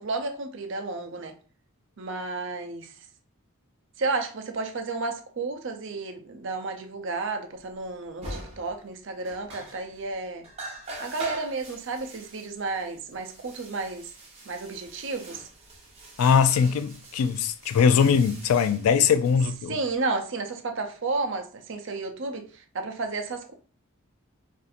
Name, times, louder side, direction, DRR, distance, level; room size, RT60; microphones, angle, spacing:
voice 1, 0.0-1.3 2.0-2.9 4.0-10.5 11.0-14.1 14.5-15.5 19.7-23.5, right 3 dB, 55° right, 0.5 m, -32 dB
sound 1, 7.8-7.9 8.2-8.9 9.2-10.1 10.4-19.9, right 2 dB, 30° right, 0.9 m, -44 dB
voice 2, 16.2-19.8, left 6 dB, 80° left, 0.3 m, -21 dB
2.6 x 2.4 x 4.2 m
head